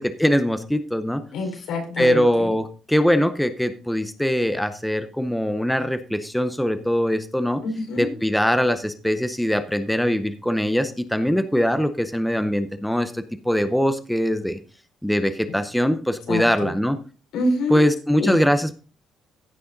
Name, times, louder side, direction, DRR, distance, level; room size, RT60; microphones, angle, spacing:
voice 1, 0.0-1.2 2.0-7.6 8.0-14.6 15.0-17.0 17.7-18.8, equal, ahead, 10 dB, 0.6 m, -22 dB
voice 2, 1.3-2.5 7.6-8.1 15.5-15.6 16.3-16.7 17.3-17.8 18.2-18.4, left 2 dB, 90° left, 2 dB, 4.5 m, -26 dB
15.5 x 6.3 x 3.9 m, 0.35 s
cardioid pair, 175°, 0 cm